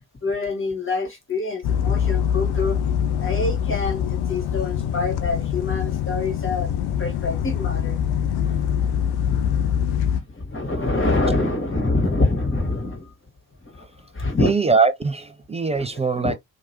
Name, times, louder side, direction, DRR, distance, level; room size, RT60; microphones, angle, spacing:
voice 1, 0.2-2.9 3.2-6.7 7.0-8.0 9.2-9.5 9.9-13.1 13.7-13.8 14.1-14.5 15.7-15.9 16.1-16.4, left 3 dB, 25° left, 1.6 m, -25 dB
sound 1, 1.6-10.2, left 9 dB, 55° left, 0.7 m, -24 dB
voice 2, 14.4-16.3, right 4 dB, 15° right, 0.4 m, -22 dB
3.0 x 2.6 x 2.8 m
figure-of-eight pair, 40°, 47 cm